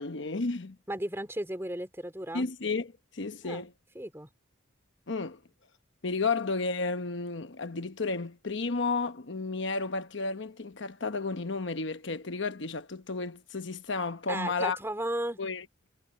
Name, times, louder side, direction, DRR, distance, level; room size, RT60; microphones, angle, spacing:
voice 1, 0.0-0.8 2.3-3.7 5.1-5.4 6.0-14.8 15.4-15.6, left 3 dB, 65° left, 1.1 m, -32 dB
voice 2, 0.9-2.5 3.4-3.6 3.9-4.3 14.3-15.4, right 1 dB, 15° right, 2.9 m, -34 dB
head